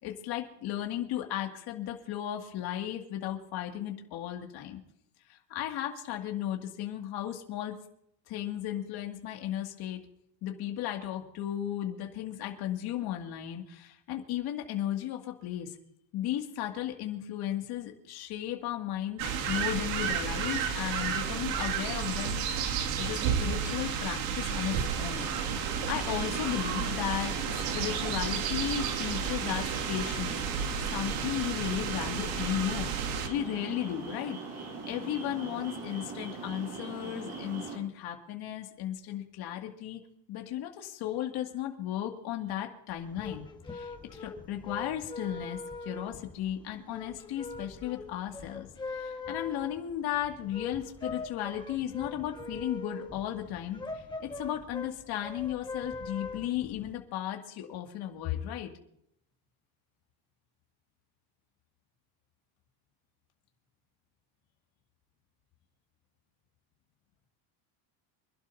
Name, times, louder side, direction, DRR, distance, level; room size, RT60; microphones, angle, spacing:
voice 1, 0.0-4.8 5.3-7.8 8.3-10.0 10.4-15.8 16.1-22.4 23.0-25.3 25.9-30.4 30.9-32.9 33.3-40.0 40.3-43.4 43.7-43.9 44.2-58.7, left 11 dB, 50° left, 2 dB, 2.4 m, -35 dB
sound 1, 19.2-33.3, right 7 dB, 70° right, 2.5 m, -32 dB
sound 2, 25.1-37.8, right 4 dB, 35° right, 5.8 m, -41 dB
sound 3, 42.9-56.9, left 3 dB, 10° left, 1.3 m, -42 dB
26.5 x 12.0 x 2.8 m, 0.73 s
cardioid pair, 150°, 47 cm